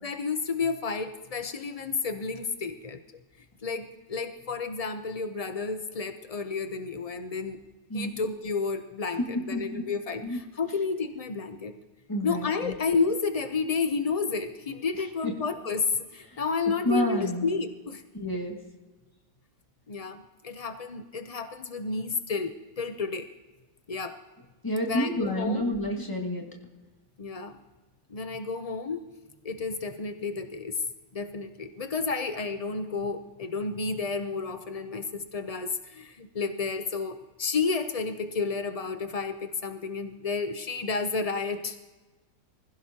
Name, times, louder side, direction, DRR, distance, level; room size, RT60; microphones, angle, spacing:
voice 1, 0.0-3.0 3.6-7.6 7.9-11.7 12.2-18.0 19.9-23.3 23.9-24.2 24.9-25.7 27.2-27.6 28.1-29.0 29.4-30.8 31.1-41.9, left 4 dB, 70° left, 7 dB, 0.3 m, -31 dB
voice 2, 9.5-9.8 10.2-10.4 12.1-12.7 15.2-15.3 16.8-17.5 18.1-18.6 24.6-26.5, left 1 dB, 10° left, 0 dB, 2.0 m, -29 dB
25.5 x 15.5 x 2.9 m, 1.2 s
omnidirectional pair, 1.8 m